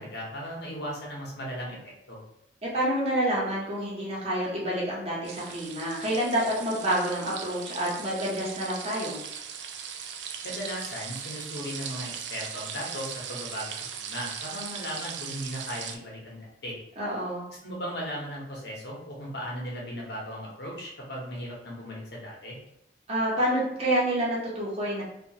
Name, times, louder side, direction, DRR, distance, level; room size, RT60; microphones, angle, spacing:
voice 1, 0.0-2.2 10.4-16.7 17.6-22.6, equal, 65° left, -3 dB, 0.9 m, -37 dB
voice 2, 2.6-9.2 17.0-17.4 23.1-25.0, right 1 dB, 35° right, -6 dB, 0.9 m, -28 dB
sound 1, 5.2-16.0, right 7 dB, 70° right, 0.3 m, -39 dB
2.8 x 2.4 x 2.8 m, 0.80 s
head